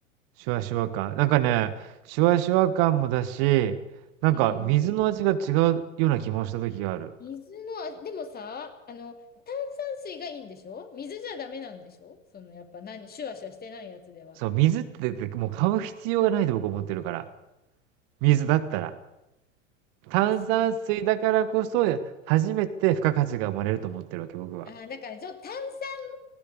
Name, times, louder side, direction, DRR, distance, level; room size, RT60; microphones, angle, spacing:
voice 1, 0.5-3.8 4.2-7.1 14.4-17.2 18.2-18.9 20.1-22.0 22.3-24.7, right 13 dB, 45° right, 12 dB, 1.4 m, -24 dB
voice 2, 4.3-4.7 7.2-9.2 9.5-14.4 20.1-20.7 24.6-26.2, left 6 dB, 25° left, 7 dB, 2.7 m, -38 dB
19.5 x 17.0 x 8.1 m, 0.92 s
figure-of-eight pair, 85°, 39 cm